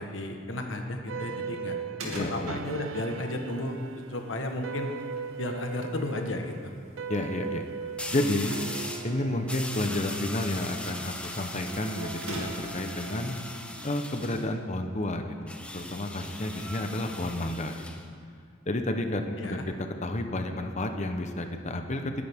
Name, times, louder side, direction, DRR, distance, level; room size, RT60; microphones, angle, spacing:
voice 1, 0.0-1.8 2.0-4.9 5.4-6.7 19.4-19.6, left 1 dB, 65° left, 4 dB, 1.3 m, -33 dB
sound 1, 1.1-15.6, right 6 dB, 70° right, 0.6 m, -40 dB
sound 2, 2.0-12.9, right 1 dB, 85° right, 2.4 m, -46 dB
voice 2, 2.1-2.6 7.1-7.6 8.1-8.6 9.0-13.4 13.8-18.0 18.7-19.6 20.0-22.2, left 1 dB, 35° left, 6 dB, 0.9 m, -31 dB
sound 3, 5.0-5.2 8.0-9.1 9.5-14.5 15.5-18.0, left 1 dB, 5° left, 0.8 m, -39 dB
20.0 x 10.5 x 3.6 m, 2.3 s
head